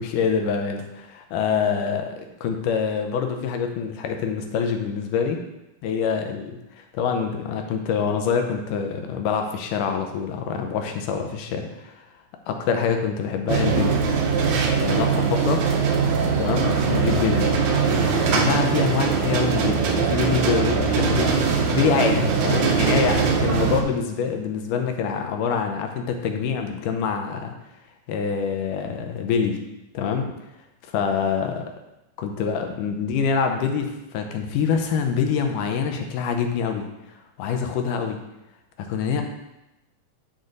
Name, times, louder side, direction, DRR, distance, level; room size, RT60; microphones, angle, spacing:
voice 1, 0.0-5.4 5.8-12.0 12.5-14.0 14.8-15.7 16.4-17.5 18.0-27.5 28.1-29.6 29.9-30.3 30.9-31.7 32.2-36.9 37.4-38.2 38.8-39.2, left 6 dB, 80° left, 4 dB, 2.4 m, -25 dB
sound 1, 13.5-23.8, right 5 dB, 70° right, 2.0 m, -21 dB
11.0 x 3.9 x 3.9 m, 0.93 s
omnidirectional pair, 3.7 m